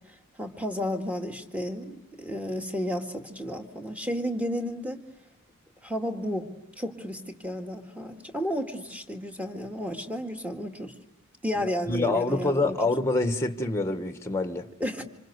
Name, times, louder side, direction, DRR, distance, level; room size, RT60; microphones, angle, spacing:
voice 1, 0.4-5.0 5.8-6.5 6.8-10.9 11.4-12.7 14.8-15.0, equal, 5° right, 2.0 m, -32 dB
voice 2, 11.5-14.7, left 2 dB, 10° left, 1.4 m, -26 dB
27.0 x 26.5 x 8.1 m
head